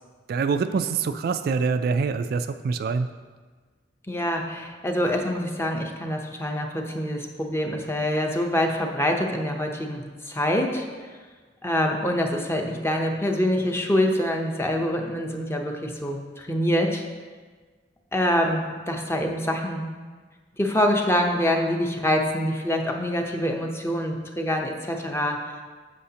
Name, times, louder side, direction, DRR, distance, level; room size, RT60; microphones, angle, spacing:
voice 1, 0.3-3.1, right 5 dB, 55° right, 9 dB, 0.3 m, -25 dB
voice 2, 4.1-10.9 11.6-17.0 18.1-19.8 20.6-25.4, equal, 15° left, 2 dB, 0.7 m, -25 dB
9.7 x 6.9 x 2.8 m, 1.4 s
head